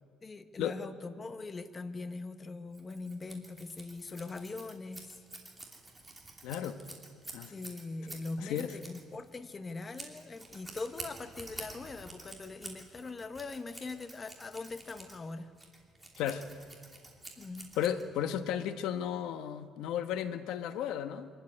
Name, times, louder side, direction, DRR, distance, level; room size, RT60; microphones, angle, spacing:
voice 1, 0.2-5.2 7.5-15.5 17.4-17.7, left 3 dB, 20° left, 9 dB, 0.9 m, -41 dB
Scissors, 2.7-18.3, right 2 dB, 10° right, 3.0 m, -49 dB
voice 2, 6.4-6.8 7.3-7.6 8.4-8.7 16.2-16.5 17.8-21.3, left 10 dB, 75° left, 10 dB, 1.1 m, -34 dB
25.5 x 13.0 x 9.8 m, 2.2 s
cardioid pair, 155°, 0 cm